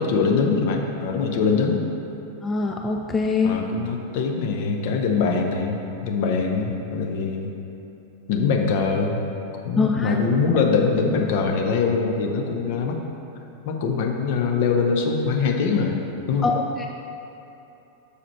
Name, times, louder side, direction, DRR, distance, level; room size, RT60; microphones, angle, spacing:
voice 1, 0.0-1.8 3.4-7.5 8.3-9.2 9.6-13.0 13.7-16.0 16.3-16.5, left 5 dB, 50° left, 2 dB, 0.7 m, -23 dB
voice 2, 2.4-3.6 9.8-10.1 16.4-16.9, left 4 dB, 15° left, 2 dB, 0.3 m, -23 dB
6.6 x 4.9 x 4.5 m, 2.9 s
figure-of-eight pair, 90°, 0 cm